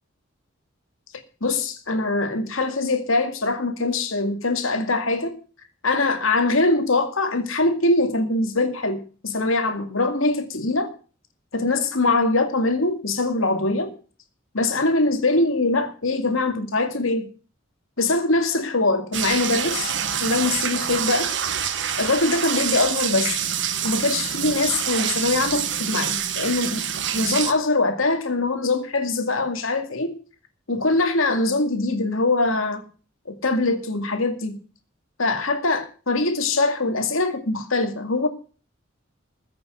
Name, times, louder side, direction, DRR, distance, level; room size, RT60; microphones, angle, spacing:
voice 1, 1.4-5.4 5.8-10.9 11.5-13.9 14.5-17.3 18.0-21.3 22.0-23.4 23.8-26.9 27.1-30.2 30.7-32.8 33.4-34.6 35.2-38.3, left 2 dB, 85° left, 2.3 m, -23 dB
sound 1, 19.1-27.5, right 9 dB, 60° right, 1.3 m, -26 dB
15.0 x 6.7 x 7.9 m
head